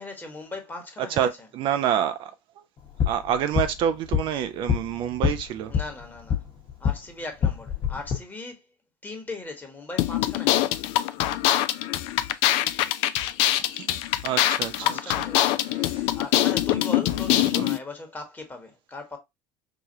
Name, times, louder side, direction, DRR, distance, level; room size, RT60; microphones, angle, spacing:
voice 1, 0.0-1.5 5.7-6.4 6.8-8.6 9.0-10.8 14.8-19.2, left 2 dB, 15° left, 1.3 m, -39 dB
voice 2, 1.2-2.3 3.1-5.7 13.8-15.2 15.7-16.0 17.4-17.7, right 9 dB, 50° right, 0.4 m, -28 dB
sound 1, 2.8-7.0 7.3-8.2, left 7 dB, 45° left, 1.1 m, -27 dB
sound 2, 10.0-17.8, left 14 dB, 65° left, 0.4 m, -23 dB
4.8 x 2.3 x 2.7 m
hypercardioid pair, 80°, 11 cm